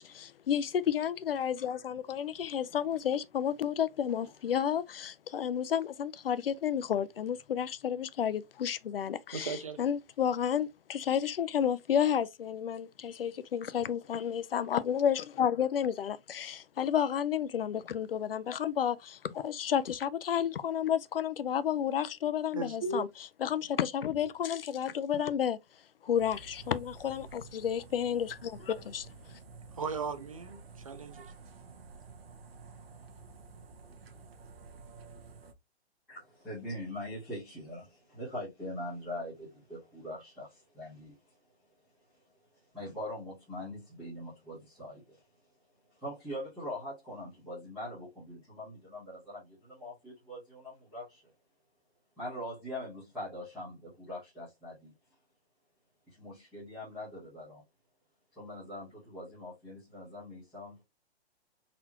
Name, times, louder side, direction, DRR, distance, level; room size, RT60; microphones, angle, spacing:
voice 1, 0.0-23.1 23.4-25.6 26.0-29.1, left 9 dB, 60° left, 0.5 m, -31 dB
voice 2, 9.3-9.8 22.5-23.1 29.7-31.3, right 4 dB, 35° right, 0.4 m, -36 dB
sound 1, 26.2-35.5, right 4 dB, 65° right, 1.0 m, -51 dB
voice 3, 36.1-41.4 42.7-45.2 45.9-51.2 52.2-54.9 56.1-57.6 58.3-60.8, left 1 dB, ahead, 0.7 m, -42 dB
4.1 x 2.8 x 2.8 m
hypercardioid pair, 180°, 33 cm